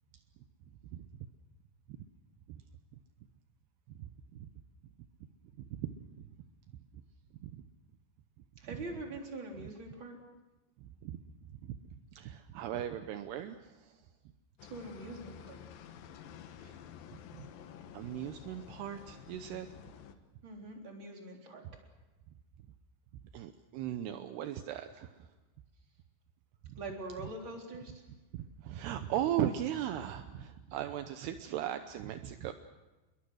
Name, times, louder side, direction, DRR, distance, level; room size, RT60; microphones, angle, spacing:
voice 1, 0.8-1.3 2.0-2.1 2.5-2.6 3.9-4.5 5.6-6.2 6.9-7.0 7.4-7.7 8.7-8.8 10.8-14.0 16.6-16.8 17.3-17.5 17.9-19.7 21.6-21.8 23.3-25.3 26.6-26.8 28.3-32.5, right 11 dB, 80° right, 8 dB, 2.4 m, -38 dB
voice 2, 8.6-10.2 14.6-15.6 20.4-21.6 26.8-28.0, right 2 dB, 25° right, 1 dB, 3.8 m, -43 dB
sound 1, 14.6-20.1, left 9 dB, 75° left, 2.2 m, -51 dB
29.0 x 22.0 x 6.4 m, 1.1 s
omnidirectional pair, 5.8 m